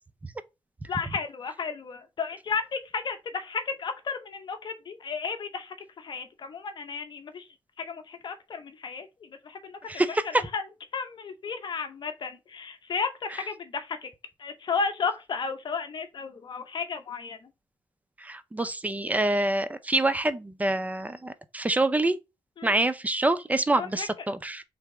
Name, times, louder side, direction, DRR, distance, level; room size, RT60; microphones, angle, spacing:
voice 1, 0.9-7.4 7.9-9.1 9.5-9.8 10.5-10.6 10.9-14.1 14.4-17.4 22.6-22.8 23.8-24.1, left 5 dB, 60° left, 0.7 m, -33 dB
voice 2, 9.9-10.4 18.2-22.2 22.6-24.6, right 2 dB, 15° right, 0.5 m, -26 dB
3.3 x 2.9 x 4.7 m
cardioid pair, 90°, 9 cm